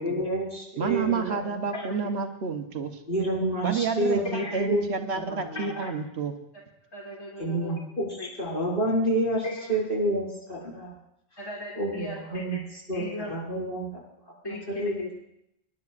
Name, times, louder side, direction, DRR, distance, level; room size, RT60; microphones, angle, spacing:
voice 1, 0.0-1.4 3.1-4.2 4.7-4.9 5.1-5.7 7.4-10.9 11.8-14.0 14.8-15.1, right 1 dB, 50° left, -6 dB, 5.8 m, -29 dB
voice 2, 0.8-2.9 3.6-6.3, right 5 dB, 70° right, 6 dB, 1.1 m, -29 dB
voice 3, 5.5-5.9 6.9-7.7 8.2-8.3 9.4-9.8 11.4-12.6 12.9-13.3 14.4-15.1, left 1 dB, 20° left, -3 dB, 1.8 m, -37 dB
25.5 x 10.5 x 2.5 m, 0.80 s
omnidirectional pair, 1.1 m